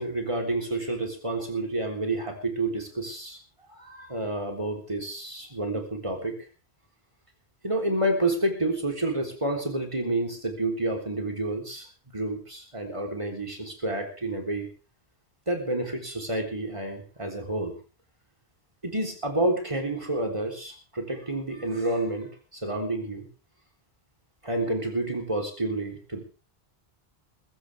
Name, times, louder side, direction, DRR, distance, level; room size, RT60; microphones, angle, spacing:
voice 1, 0.0-3.4 3.7-6.4 7.6-11.9 12.1-14.7 15.5-17.7 18.8-23.3 24.4-26.2, right 2 dB, 30° right, 2 dB, 3.7 m, -29 dB
21.5 x 15.0 x 3.5 m, 0.35 s
omnidirectional pair, 1.1 m